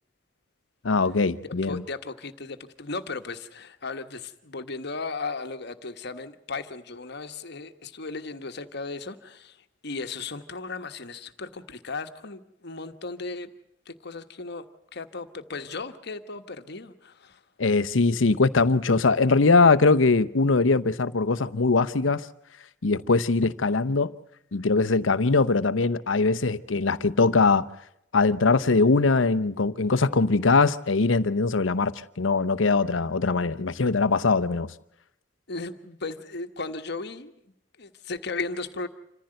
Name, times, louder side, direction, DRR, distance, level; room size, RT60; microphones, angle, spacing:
voice 1, 0.8-1.8 17.6-22.3 22.8-24.1 24.5-27.7 28.1-34.7, left 3 dB, 85° left, 0.8 m, -21 dB
voice 2, 1.4-13.5 13.8-14.6 14.9-17.4 35.5-37.3 37.8-38.9, left 3 dB, 60° left, 1.4 m, -36 dB
27.0 x 15.0 x 7.8 m
head